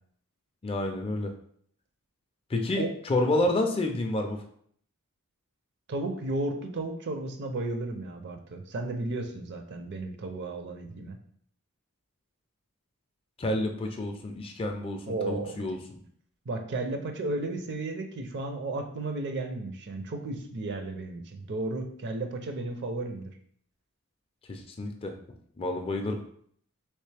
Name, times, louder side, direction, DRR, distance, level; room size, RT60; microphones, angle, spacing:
voice 1, 0.6-1.3 2.5-4.4 13.4-16.0 24.5-25.1 25.6-26.2, left 2 dB, 25° left, 4 dB, 0.4 m, -29 dB
voice 2, 5.9-11.2 15.1-15.6 16.5-23.3, right 2 dB, 50° right, 5 dB, 0.5 m, -34 dB
3.2 x 3.0 x 3.3 m, 0.63 s
head